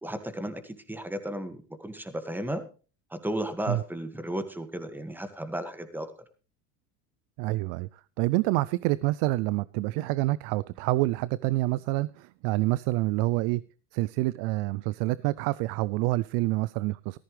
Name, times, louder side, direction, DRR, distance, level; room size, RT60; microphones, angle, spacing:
voice 1, 0.0-2.6 3.1-6.1, right 1 dB, 5° right, 9 dB, 1.8 m, -34 dB
voice 2, 7.4-13.6 13.9-17.2, right 19 dB, 65° right, 19 dB, 0.6 m, -27 dB
14.5 x 13.5 x 3.2 m, 0.35 s
supercardioid pair, 105°, 43 cm